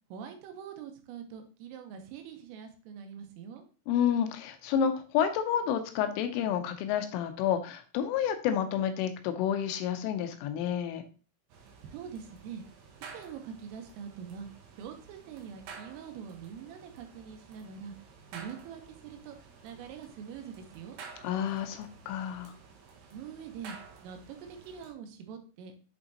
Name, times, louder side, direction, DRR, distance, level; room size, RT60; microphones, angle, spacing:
voice 1, 0.1-3.6 11.9-12.6 13.1-14.5 14.8-18.0 18.3-21.0 23.1-25.7, right 7 dB, 90° right, 6 dB, 3.5 m, -44 dB
voice 2, 3.9-11.0 21.2-22.5, left 9 dB, 80° left, 7 dB, 3.3 m, -30 dB
sound 1, 11.5-24.9, right 5 dB, 65° right, 3.0 m, -51 dB
8.1 x 5.3 x 2.9 m, 0.35 s
omnidirectional pair, 5.8 m